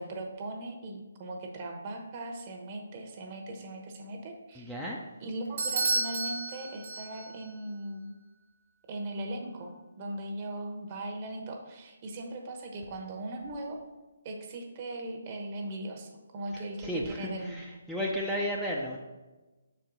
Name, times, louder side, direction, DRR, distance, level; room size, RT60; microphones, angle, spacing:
voice 1, 0.0-4.7 5.2-8.1 8.9-13.8 14.2-17.6, right 1 dB, 35° right, 2 dB, 1.0 m, -39 dB
voice 2, 4.5-5.0 16.5-19.0, equal, ahead, -5 dB, 0.5 m, -33 dB
Bell / Doorbell, 5.6-7.4, right 3 dB, 50° right, 1.5 m, -31 dB
6.0 x 4.5 x 3.9 m, 1.2 s
figure-of-eight pair, 150°, 0 cm